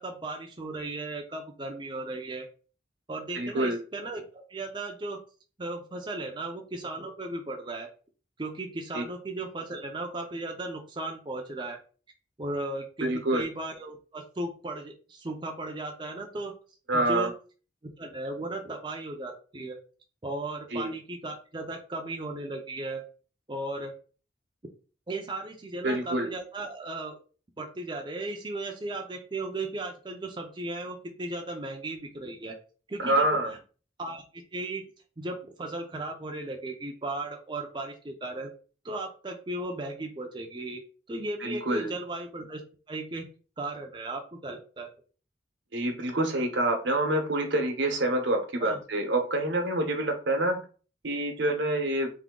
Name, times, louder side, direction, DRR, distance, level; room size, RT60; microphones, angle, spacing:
voice 1, 0.0-2.5 3.1-5.2 5.6-7.9 8.4-11.8 12.4-16.5 16.9-17.3 18.0-19.8 20.2-23.0 23.5-23.9 25.1-27.2 27.6-32.6 32.9-33.6 34.0-34.8 35.2-38.5 38.8-40.8 41.1-42.6 42.9-43.3 43.6-44.9 48.6-48.8, right 2 dB, 25° right, 2 dB, 0.5 m, -36 dB
voice 2, 3.3-3.8 8.9-9.0 13.0-13.5 16.9-17.3 20.7-20.9 25.8-26.3 33.0-33.5 41.4-41.9 45.7-50.6 51.0-52.1, right 1 dB, 80° right, 3 dB, 1.0 m, -27 dB
3.5 x 2.7 x 3.7 m, 0.38 s
head